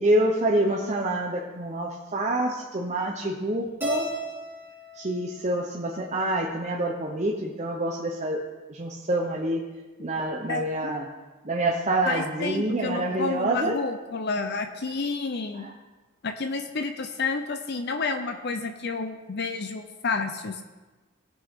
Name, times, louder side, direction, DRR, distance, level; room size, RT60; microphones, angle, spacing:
voice 1, 0.0-4.1 4.9-8.4 8.7-9.6 10.0-11.1 11.4-13.8 15.5-15.7, right 1 dB, 30° right, -1 dB, 0.8 m, -27 dB
Keyboard (musical), 3.8-6.2, left 1 dB, 10° right, 1.8 m, -37 dB
voice 2, 10.5-10.9 12.1-15.7 16.2-20.6, left 4 dB, 50° left, 6 dB, 0.6 m, -30 dB
18.0 x 6.2 x 3.7 m, 1.2 s
head